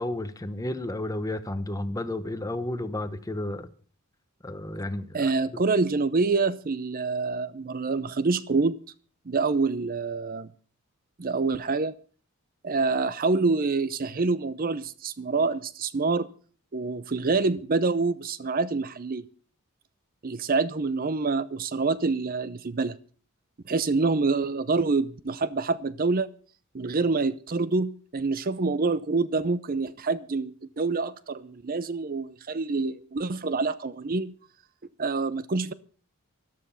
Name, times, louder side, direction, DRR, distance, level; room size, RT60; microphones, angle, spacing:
voice 1, 0.0-3.7 4.4-5.2, left 1 dB, 15° left, 1.0 m, -32 dB
voice 2, 5.1-8.8 9.3-10.5 11.2-11.9 12.6-16.3 16.7-19.2 20.2-23.0 23.7-26.3 26.7-34.3 35.0-35.7, right 3 dB, 40° right, 0.6 m, -26 dB
14.0 x 12.5 x 5.6 m
head